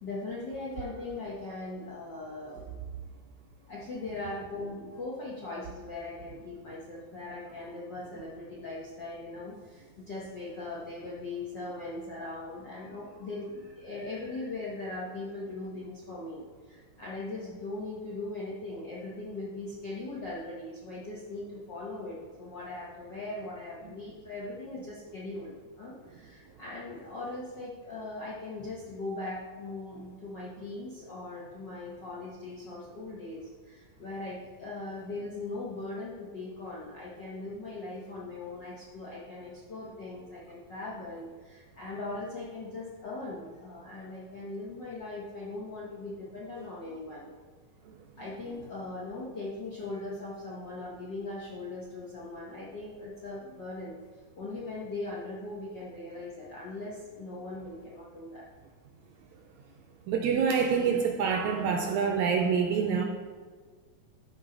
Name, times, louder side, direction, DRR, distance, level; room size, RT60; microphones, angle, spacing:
voice 1, 0.0-2.8 3.6-47.3 48.1-54.0 54.3-58.4, left 2 dB, 65° left, -6 dB, 1.1 m, -40 dB
voice 2, 60.1-63.0, right 6 dB, 80° right, 3 dB, 1.7 m, -26 dB
12.5 x 4.8 x 3.9 m, 1.5 s
omnidirectional pair, 3.8 m